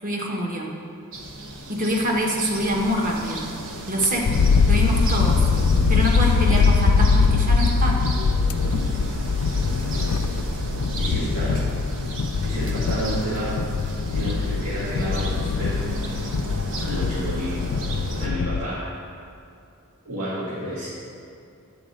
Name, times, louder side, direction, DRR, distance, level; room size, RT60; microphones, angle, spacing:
voice 1, 0.0-0.7 1.7-3.5 3.8-4.3 4.7-5.4 5.9-8.1, equal, 40° right, -1 dB, 1.3 m, -25 dB
sound 1, 1.1-18.3, equal, 60° right, 1.0 m, -33 dB
sound 2, 4.3-18.7, left 5 dB, 75° left, 0.4 m, -22 dB
voice 2, 11.0-11.7 12.4-13.6 14.1-16.0 16.8-17.6 18.2-18.9 20.1-20.9, equal, 80° right, -9 dB, 1.9 m, -30 dB
9.9 x 4.3 x 6.6 m, 2.5 s
head